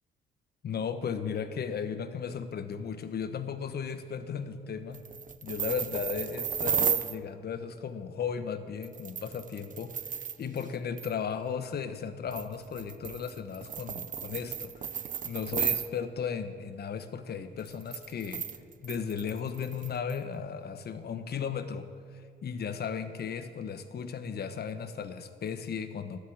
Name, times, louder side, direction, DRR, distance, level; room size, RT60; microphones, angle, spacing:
voice 1, 0.6-5.1 5.4-10.0 10.4-18.4 18.8-21.9 22.1-26.2, left 7 dB, 55° left, 10 dB, 1.1 m, -35 dB
sound 1, 4.9-7.2 8.8-10.7 11.0-11.1 12.3-15.9 17.6-20.2, right 8 dB, 40° right, 0.6 m, -34 dB
12.5 x 8.4 x 8.7 m, 2.1 s
cardioid pair, 90°, 20 cm